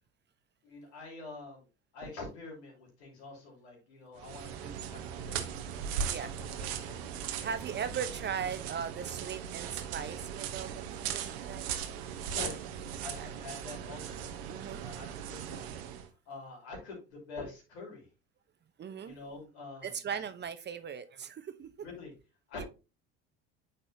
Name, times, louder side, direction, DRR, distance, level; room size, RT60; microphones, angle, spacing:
voice 1, 0.6-1.7 1.9-5.8 6.2-7.6 12.3-14.3 14.8-15.7 16.3-18.1 19.0-20.0 21.8-22.1 22.5-22.6, left 3 dB, 80° left, 2.8 m, -46 dB
sound 1, 4.2-16.1, right 8 dB, 75° right, 0.9 m, -38 dB
voice 2, 7.4-11.6 13.1-13.3 14.5-14.8 18.8-19.2 19.8-21.7 22.6-22.7, right 7 dB, 35° right, 0.8 m, -38 dB
8.9 x 4.2 x 2.6 m
hypercardioid pair, 70°, 32 cm